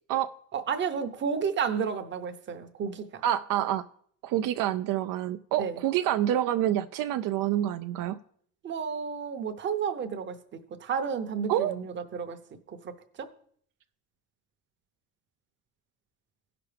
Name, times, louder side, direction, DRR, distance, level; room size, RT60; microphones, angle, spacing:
voice 1, 0.5-3.2 5.6-5.8 8.6-12.4 12.7-13.3, right 6 dB, 35° right, 8 dB, 0.8 m, -32 dB
voice 2, 3.2-3.8 4.2-8.2 11.5-11.8, right 12 dB, 75° right, 9 dB, 0.5 m, -27 dB
16.5 x 5.9 x 3.3 m, 0.62 s
cardioid pair, 155°, 33 cm